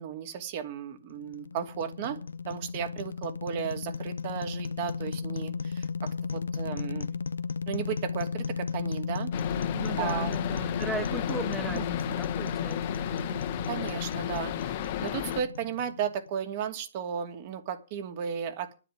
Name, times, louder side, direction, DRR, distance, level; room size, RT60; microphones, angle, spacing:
voice 1, 0.0-2.2 2.5-7.2 7.7-9.3 9.9-10.4 11.7-11.9 13.7-14.7 15.0-18.7, right 8 dB, 50° right, 6 dB, 2.6 m, -35 dB
sound 1, 1.1-16.3, left 5 dB, 85° left, 0.7 m, -34 dB
sound 2, 9.3-15.4, left 11 dB, 50° left, 1.5 m, -34 dB
voice 2, 9.7-13.4, right 3 dB, 10° right, 7 dB, 1.2 m, -38 dB
9.9 x 9.0 x 9.5 m, 0.34 s
hypercardioid pair, 120°, 0 cm